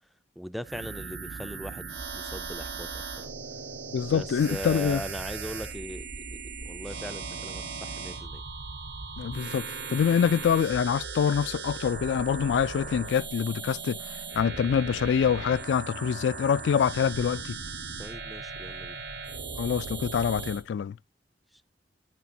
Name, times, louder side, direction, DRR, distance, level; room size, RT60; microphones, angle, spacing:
voice 1, 0.4-3.3 4.0-8.4 18.0-19.0 21.5-21.6, equal, ahead, 0.3 m, -40 dB
sound 1, 0.6-20.6, right 4 dB, 75° right, 1.2 m, -38 dB
voice 2, 3.9-5.0 9.2-14.0 14.4-17.6 19.6-20.9, left 7 dB, 85° left, 0.3 m, -25 dB
9.2 x 6.1 x 2.7 m
head